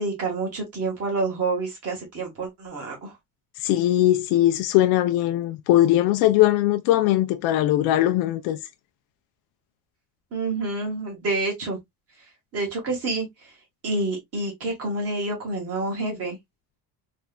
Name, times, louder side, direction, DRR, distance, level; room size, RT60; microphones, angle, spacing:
voice 1, 0.0-3.1 10.3-11.8 12.5-13.3 13.8-16.4, right 3 dB, 40° right, 1.6 m, -28 dB
voice 2, 3.6-8.6, left 14 dB, 70° left, 0.5 m, -20 dB
3.4 x 3.1 x 2.2 m
cardioid pair, 165°, 39 cm